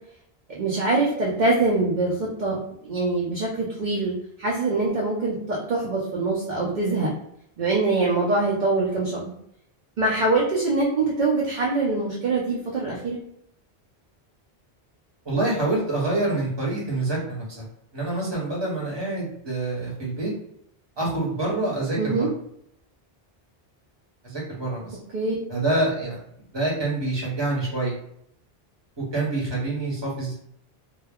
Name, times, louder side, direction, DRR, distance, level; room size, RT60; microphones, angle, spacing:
voice 1, 0.5-2.6 2.8-7.1 7.6-9.3 10.0-13.2 22.0-22.3 25.1-25.4, right 3 dB, 55° right, -3 dB, 0.6 m, -24 dB
voice 2, 15.2-17.6 17.9-20.3 21.0-22.3 24.2-25.0 25.5-26.2 26.5-27.9 29.0-30.3, right 2 dB, 30° right, -4 dB, 0.9 m, -26 dB
2.2 x 2.1 x 3.4 m, 0.71 s
omnidirectional pair, 1.0 m